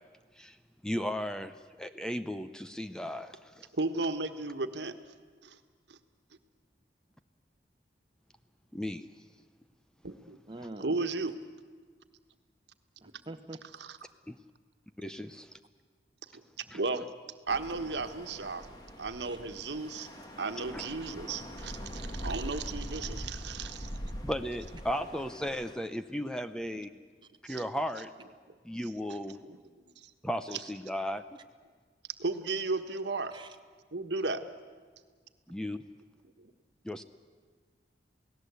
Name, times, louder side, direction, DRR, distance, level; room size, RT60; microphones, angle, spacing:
voice 1, 0.8-3.7 8.7-9.1 14.3-14.4 15.0-15.5 16.7-16.8 20.7-20.9 24.2-26.9 27.5-28.1 28.6-29.4 30.2-31.2 35.5-35.8 36.8-37.0, equal, 5° left, 10 dB, 0.6 m, -35 dB
voice 2, 3.7-4.9 5.4-5.6 5.9-6.0 10.0-10.4 10.8-11.3 13.8-14.0 16.3-16.4 16.7-17.0 17.5-18.7 19.0-20.1 20.4-23.9 27.5-27.6 29.4-29.6 30.0-30.1 32.2-33.3 33.9-34.4, right 3 dB, 80° right, 8 dB, 1.4 m, -34 dB
voice 3, 10.5-11.0 13.0-13.6 19.2-19.4 33.3-33.5, right 2 dB, 25° right, 6 dB, 1.1 m, -45 dB
sound 1, 17.5-25.7, equal, 20° left, 2.0 m, -42 dB
28.5 x 18.0 x 8.2 m, 1.5 s
head